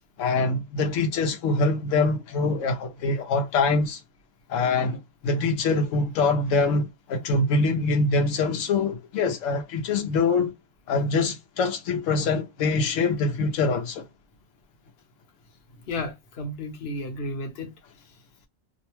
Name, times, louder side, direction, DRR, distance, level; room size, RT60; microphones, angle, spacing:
voice 1, 0.2-4.0 4.5-10.5 10.9-14.0, left 3 dB, 90° left, 1.0 m, -24 dB
voice 2, 15.8-17.7 18.0-18.2, left 2 dB, 55° left, 1.0 m, -33 dB
2.7 x 2.0 x 3.0 m
omnidirectional pair, 1.3 m